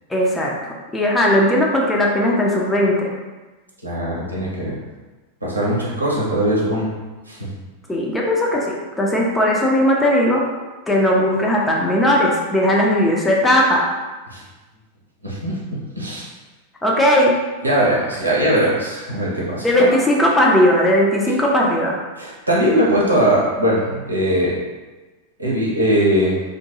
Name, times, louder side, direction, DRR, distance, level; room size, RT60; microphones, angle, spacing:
voice 1, 0.1-0.5 0.9-3.1 7.9-10.5 10.9-13.9 16.8-17.3 19.6-22.0, left 1 dB, 10° left, -2 dB, 0.5 m, -17 dB
voice 2, 3.8-4.8 5.4-6.9 7.3-7.5 14.3-14.4 15.2-15.6 16.0-16.3 17.6-19.9 22.2-24.6 25.4-26.4, right 1 dB, 85° right, -5 dB, 0.6 m, -20 dB
2.4 x 2.2 x 2.8 m, 1.2 s
figure-of-eight pair, 90°, 0 cm